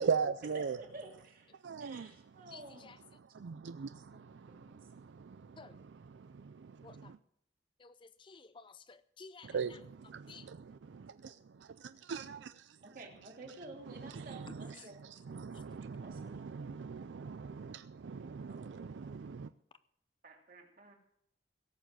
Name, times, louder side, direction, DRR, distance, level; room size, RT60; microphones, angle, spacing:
voice 1, 0.0-0.8 1.6-2.1 3.3-7.2 9.4-11.3 11.8-12.6 14.3-14.7 15.3-18.6 19.2-19.5, right 6 dB, 75° right, 0.4 m, -40 dB
voice 2, 0.5-3.0 4.1-4.8 12.8-15.1 15.9-16.5 18.5-18.9 20.2-20.9, right 2 dB, 50° right, 2.9 m, -52 dB
voice 3, 2.5-3.0 5.6-5.7 6.8-7.1 7.8-7.9 8.2-9.8 10.3-10.5, left 4 dB, 25° left, 0.5 m, -54 dB
17.0 x 7.2 x 7.5 m
head